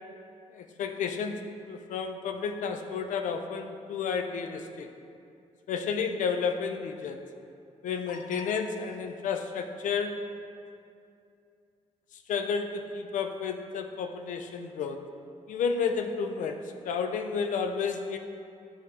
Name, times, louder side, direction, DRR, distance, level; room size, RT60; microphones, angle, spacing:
voice 1, 0.5-4.9 5.7-7.2 7.8-10.3 12.3-15.0 15.5-18.2, left 5 dB, 75° left, 6 dB, 0.5 m, -31 dB
9.5 x 3.5 x 2.8 m, 2.5 s
cardioid pair, 140°, 13 cm